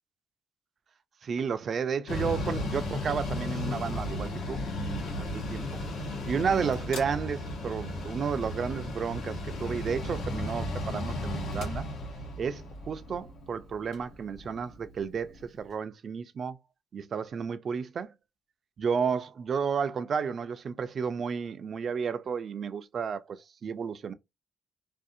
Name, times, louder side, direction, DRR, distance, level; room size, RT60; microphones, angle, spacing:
voice 1, 1.2-5.8 6.3-11.9 12.4-16.6 16.9-18.1 18.8-24.1, right 6 dB, 50° right, 0.3 m, -32 dB
Mechanical fan, 2.1-15.4, left 1 dB, 80° left, 0.9 m, -35 dB
2.5 x 2.0 x 2.5 m
cardioid pair, 90°, 0 cm